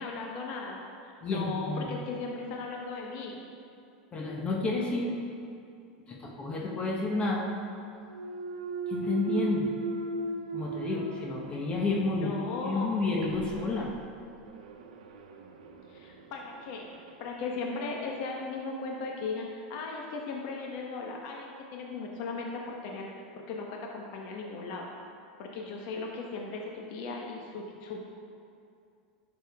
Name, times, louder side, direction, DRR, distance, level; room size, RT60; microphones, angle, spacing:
voice 1, 0.0-3.4 12.2-12.9 15.9-16.8 17.2-24.9 25.4-28.0, left 3 dB, 60° left, 0 dB, 1.1 m, -37 dB
voice 2, 1.2-1.9 4.1-5.1 6.1-7.5 8.9-9.7 10.5-13.9, left 3 dB, 30° left, -1 dB, 1.2 m, -30 dB
Thump thud, 8.0-12.1 12.5-17.2, right 3 dB, 85° right, 0.8 m, -38 dB
11.0 x 6.7 x 3.6 m, 2.4 s
supercardioid pair, 115°, 4 cm